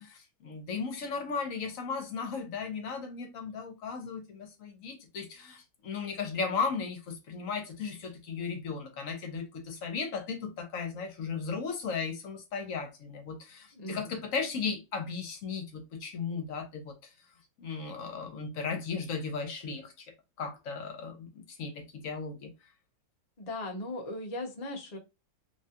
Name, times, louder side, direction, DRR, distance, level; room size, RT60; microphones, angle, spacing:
voice 1, 0.0-16.9 17.6-20.1 20.4-22.5, left 5 dB, 65° left, 1.0 m, -36 dB
voice 2, 13.7-14.2 23.4-25.0, left 1 dB, 45° left, 0.5 m, -38 dB
3.1 x 2.3 x 2.7 m
omnidirectional pair, 1.6 m